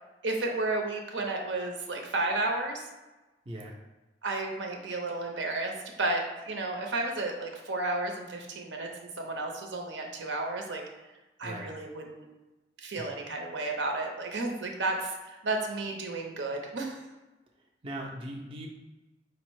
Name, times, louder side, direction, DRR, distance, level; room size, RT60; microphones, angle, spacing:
voice 1, 0.2-2.8 4.2-5.7 6.0-10.8 11.4-12.2 12.8-17.0, right 2 dB, 75° right, 2 dB, 0.7 m, -32 dB
voice 2, 3.5-3.8 11.4-11.8 12.9-13.1 17.8-18.7, right 1 dB, 30° right, -1 dB, 0.5 m, -39 dB
4.7 x 2.1 x 4.6 m, 1.1 s
head